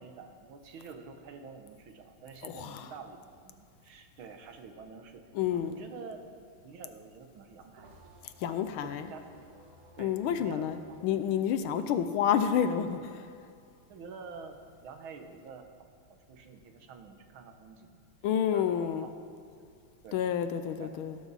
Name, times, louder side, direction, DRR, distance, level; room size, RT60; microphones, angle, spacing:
voice 1, 0.0-6.3 6.6-7.9 8.4-9.6 10.0-11.0 13.9-17.9 18.5-19.1 20.0-20.2 20.7-21.0, right 5 dB, 70° right, 6 dB, 1.7 m, -48 dB
voice 2, 2.4-2.9 5.3-5.7 8.2-9.1 10.0-13.3 18.2-19.1 20.1-21.2, left 8 dB, 75° left, 10 dB, 1.4 m, -29 dB
sound 1, 5.6-12.5 12.8-14.6, right 1 dB, 45° right, 2.2 m, -58 dB
18.0 x 11.5 x 4.1 m, 2.4 s
omnidirectional pair, 2.4 m